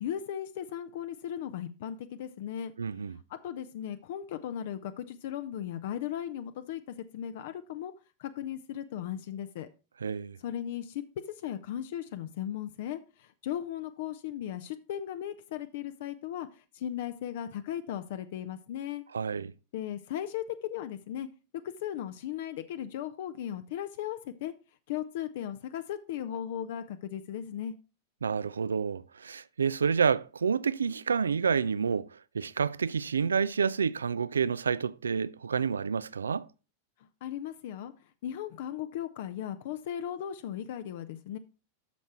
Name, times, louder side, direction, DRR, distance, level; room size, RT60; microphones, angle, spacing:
voice 1, 0.0-2.7 3.4-7.9 8.2-9.7 10.4-19.0 19.7-21.3 21.6-24.5 24.9-27.7 37.2-37.9 38.2-41.4, left 10 dB, 55° left, 0.6 m, -37 dB
voice 2, 2.8-3.2 10.0-10.4 19.1-19.5 28.2-32.1 32.3-36.5, right 6 dB, 70° right, 0.3 m, -29 dB
8.4 x 6.6 x 4.4 m
figure-of-eight pair, 90°, 0 cm